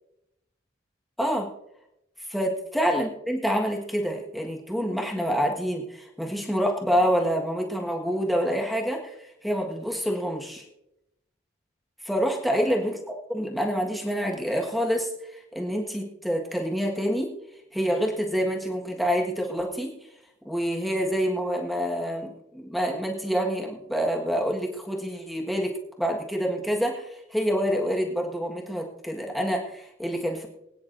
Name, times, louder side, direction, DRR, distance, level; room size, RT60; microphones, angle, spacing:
voice 1, 1.2-1.5 2.3-10.6 12.1-17.3 17.7-19.9 20.4-30.5, equal, ahead, -1 dB, 1.6 m, -27 dB
24.0 x 9.5 x 2.7 m, 0.86 s
head